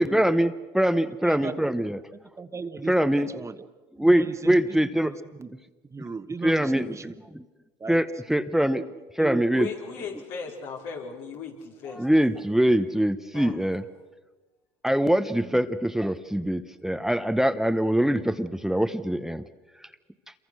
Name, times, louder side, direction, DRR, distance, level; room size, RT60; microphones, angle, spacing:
voice 1, 0.0-2.0 2.9-3.4 4.0-5.1 6.4-7.0 7.3-7.4 7.9-8.8 9.2-9.7 11.9-13.8 14.8-19.5, right 1 dB, 5° right, 10 dB, 0.9 m, -23 dB
voice 2, 1.0-1.8 2.1-3.7 3.9-5.5 5.9-7.1 7.8-8.0 8.7-8.8 9.2-9.4 15.3-15.6, right 4 dB, 25° right, 10 dB, 1.3 m, -37 dB
voice 3, 9.5-12.0 13.3-13.5, left 6 dB, 80° left, -1 dB, 4.9 m, -36 dB
27.5 x 23.5 x 6.4 m, 1.3 s
supercardioid pair, 80°, 12 cm